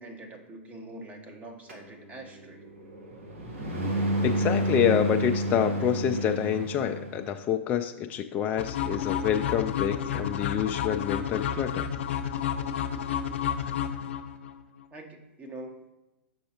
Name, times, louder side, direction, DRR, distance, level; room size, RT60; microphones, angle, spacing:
voice 1, 0.0-2.7 13.5-13.6 14.9-15.8, right 1 dB, 20° right, 4 dB, 0.9 m, -44 dB
sound 1, 1.7-7.3, right 1 dB, 80° right, 1.4 m, -30 dB
voice 2, 4.2-11.9, left 9 dB, 25° left, 6 dB, 0.3 m, -27 dB
sound 2, 8.6-14.5, left 9 dB, 65° left, 0.6 m, -30 dB
6.5 x 5.5 x 2.8 m, 1.0 s
hypercardioid pair, 115°, 7 cm